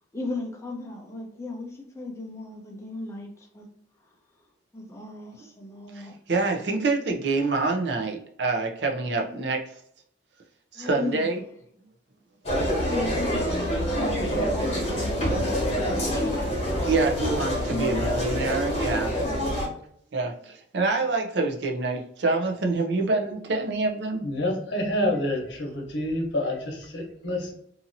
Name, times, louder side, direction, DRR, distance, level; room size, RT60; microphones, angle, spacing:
voice 1, 0.1-3.7 4.7-6.1 9.1-9.6 10.7-11.5 12.9-16.5 17.6-18.2 19.2-19.7 21.0-21.1, left 2 dB, 15° left, 0.6 m, -37 dB
voice 2, 5.9-9.6 10.7-11.4 16.9-19.1 20.1-24.3, right 3 dB, 65° right, 0.6 m, -26 dB
sound 1, 12.4-19.7, equal, 35° left, 1.0 m, -26 dB
voice 3, 24.2-27.5, left 1 dB, 70° left, 1.0 m, -28 dB
2.7 x 2.7 x 2.6 m
head